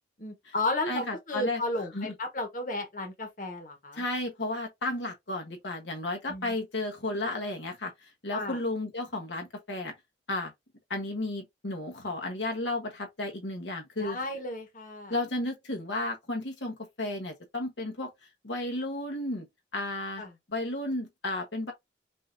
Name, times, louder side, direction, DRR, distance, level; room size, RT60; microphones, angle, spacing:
voice 1, 0.2-4.0 6.3-6.5 8.3-8.6 14.0-15.1 20.2-20.3, left 2 dB, 45° left, 1.3 m, -33 dB
voice 2, 0.9-1.6 1.9-2.1 3.9-9.9 10.3-10.5 10.9-14.2 15.1-18.1 18.4-19.5 19.7-20.2 20.5-21.7, left 2 dB, 80° left, 1.2 m, -33 dB
5.5 x 2.7 x 2.6 m
head